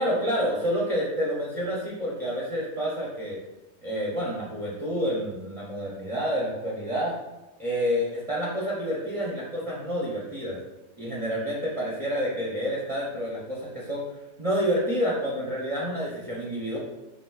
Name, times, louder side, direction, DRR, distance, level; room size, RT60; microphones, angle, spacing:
voice 1, 0.0-3.4 3.8-7.1 7.6-10.6 11.0-14.0 14.4-16.8, equal, 50° right, -6 dB, 0.4 m, -28 dB
5.0 x 3.5 x 2.3 m, 1.0 s
omnidirectional pair, 1.8 m